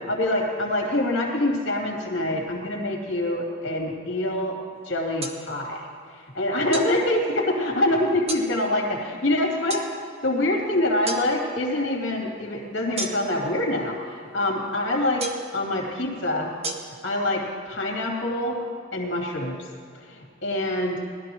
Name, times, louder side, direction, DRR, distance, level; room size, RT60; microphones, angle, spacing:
voice 1, 0.0-4.6 4.8-5.9 6.3-9.8 10.2-15.3 15.5-16.5 17.0-18.6 18.9-19.6 20.1-21.0, left 1 dB, 60° left, 0 dB, 2.7 m, -25 dB
sound 1, 5.2-5.4 6.7-6.9 8.3-8.5 9.7-9.9 11.1-11.2 13.0-13.4 15.2-15.5 16.6-16.7, right 2 dB, 30° right, 0.9 m, -31 dB
19.5 x 12.0 x 3.1 m, 2.2 s
head